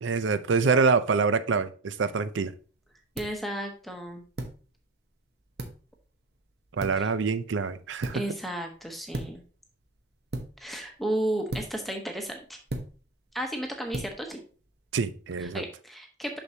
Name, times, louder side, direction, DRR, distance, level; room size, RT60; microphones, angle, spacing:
voice 1, 0.0-2.5 6.8-8.2 14.9-15.6, right 4 dB, 85° right, 0.5 m, -25 dB
sound 1, 2.0-15.4, right 1 dB, 55° right, 0.9 m, -41 dB
voice 2, 3.2-4.2 7.0-7.1 8.1-9.4 10.6-12.4 13.3-14.4 15.4-16.4, right 1 dB, ahead, 0.9 m, -33 dB
6.4 x 6.0 x 2.8 m
head